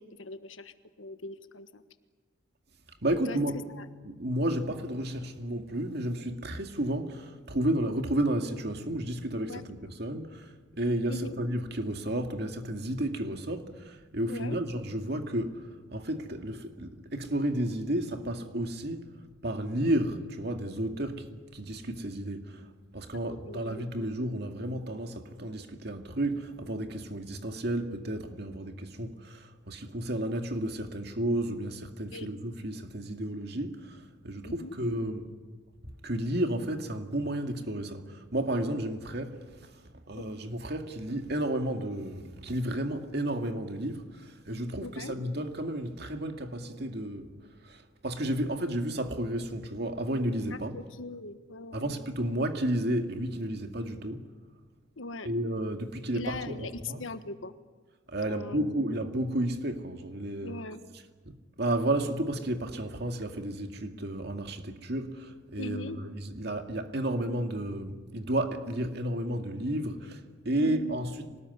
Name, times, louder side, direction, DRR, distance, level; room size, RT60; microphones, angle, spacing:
voice 1, 0.0-1.8 3.3-3.4 3.8-3.9 9.5-9.7 11.1-11.4 14.3-14.6 23.1-23.9 32.1-32.3 34.4-34.7 40.1-40.3 44.8-45.1 50.5-52.0 55.0-55.3 56.1-57.5 58.3-58.8 60.4-60.8 65.6-66.0 70.6-71.0, left 2 dB, 85° left, 1.4 m, -40 dB
voice 2, 3.0-3.6 4.0-19.1 19.4-22.6 22.9-35.3 36.0-39.7 40.1-47.3 47.6-50.8 51.7-54.3 55.2-57.0 58.1-60.6 61.3-71.4, right 1 dB, 55° right, 2.2 m, -32 dB
25.5 x 19.5 x 9.7 m
head